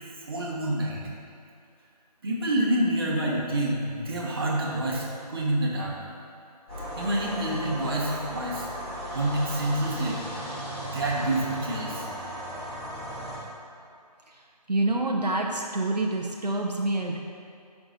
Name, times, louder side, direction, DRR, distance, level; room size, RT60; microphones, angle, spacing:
voice 1, 0.3-1.0 2.2-6.0 7.0-8.7 9.1-10.3 10.8-12.1, right 1 dB, 35° right, -4 dB, 1.4 m, -27 dB
sound 1, 6.7-13.4, equal, 15° left, 2.1 m, -36 dB
voice 2, 14.3-17.2, right 2 dB, 75° right, 0 dB, 0.8 m, -27 dB
13.5 x 5.9 x 2.8 m, 2.3 s
figure-of-eight pair, 155°, 21 cm